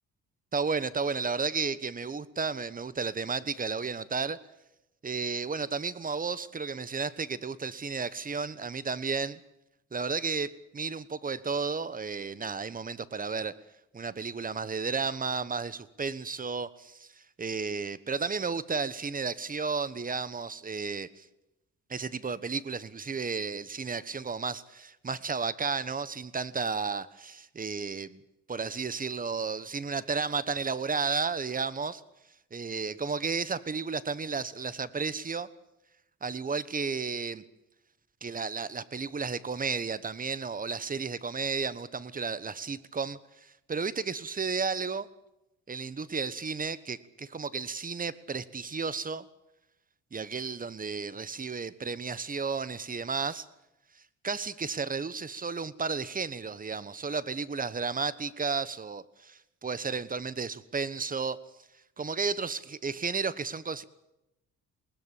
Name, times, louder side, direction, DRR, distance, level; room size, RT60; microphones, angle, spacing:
voice 1, 0.5-4.4 5.0-9.4 9.9-13.5 13.9-21.2 21.9-28.2 28.5-32.0 32.5-35.5 36.2-37.4 38.2-45.1 45.7-49.3 50.1-53.5 54.2-61.4 62.0-63.8, right 5 dB, 30° right, 16 dB, 1.2 m, -33 dB
21.0 x 19.5 x 8.4 m, 0.90 s
cardioid pair, 90°, 30 cm